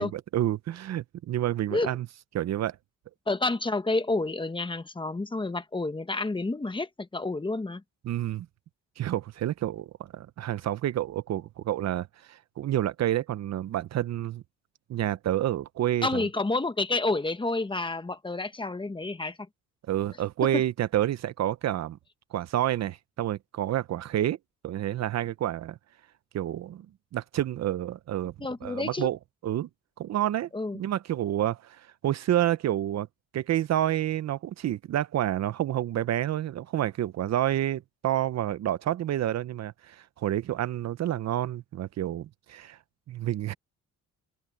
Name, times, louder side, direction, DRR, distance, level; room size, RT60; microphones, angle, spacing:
voice 1, 0.0-2.1 2.3-2.8 8.0-8.5 9.0-14.4 14.9-16.2 19.9-22.0 22.3-24.4 24.6-25.8 26.3-26.9 27.1-28.3 28.6-29.2 29.4-29.7 30.0-30.5 30.7-33.1 33.3-42.8 43.1-43.5, right 12 dB, 60° right, 0.7 m, -29 dB
voice 2, 3.3-7.8 16.0-19.4 28.4-29.1 30.5-30.8, left 2 dB, 15° left, 1.3 m, -29 dB
cardioid pair, 90°, 30 cm